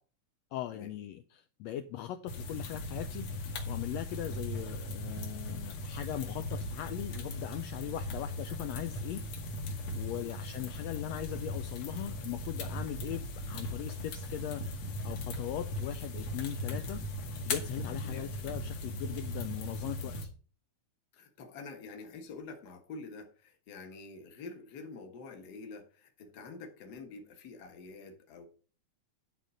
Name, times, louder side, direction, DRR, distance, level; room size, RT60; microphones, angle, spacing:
voice 1, 0.5-9.2 9.9-17.0 17.4-20.3, left 12 dB, 80° left, 8 dB, 1.5 m, -40 dB
sound 1, 2.3-20.3, left 1 dB, 60° left, 2.3 m, -38 dB
voice 2, 21.1-28.5, left 3 dB, 45° left, 5 dB, 1.3 m, -47 dB
10.5 x 3.8 x 6.8 m, 0.38 s
omnidirectional pair, 3.6 m